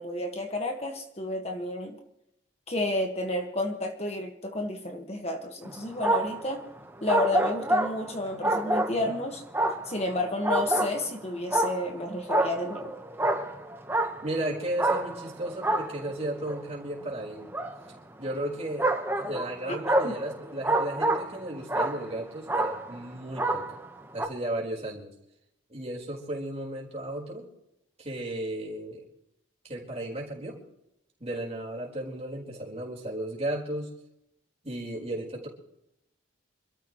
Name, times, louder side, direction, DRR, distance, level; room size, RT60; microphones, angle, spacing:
voice 1, 0.0-2.0 2.7-6.6 7.0-9.4 9.8-12.9 19.6-19.8 20.0-20.1, left 1 dB, 30° left, 3 dB, 1.6 m, -31 dB
sound 1, 5.6-6.5 7.1-9.2 9.5-11.1 11.5-12.0 12.3-14.4 14.8-16.7 17.5-17.7 18.8-21.4 21.7-22.2 22.5-23.0 23.4-23.9 24.2-24.3, right 1 dB, 10° right, 1.2 m, -27 dB
voice 2, 14.2-17.5 18.2-23.8 24.1-25.1 25.7-27.5 28.0-29.0 29.6-30.6 31.2-33.9 34.6-35.5, right 1 dB, 30° right, -2 dB, 4.4 m, -34 dB
27.0 x 13.5 x 3.1 m, 0.83 s
head